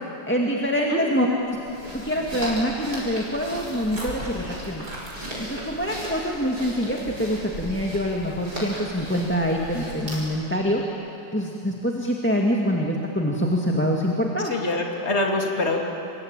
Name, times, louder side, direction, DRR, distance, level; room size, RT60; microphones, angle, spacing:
voice 1, 0.3-1.6 1.9-4.9 5.4-10.8 11.3-14.5, equal, 5° left, -1 dB, 1.7 m, -25 dB
voice 2, 0.9-1.4 14.5-15.8, left 2 dB, 35° left, 1 dB, 3.0 m, -25 dB
sound 1, 1.4-10.5, equal, 55° right, 6.8 m, -36 dB
28.5 x 22.5 x 8.9 m, 2.7 s
omnidirectional pair, 2.0 m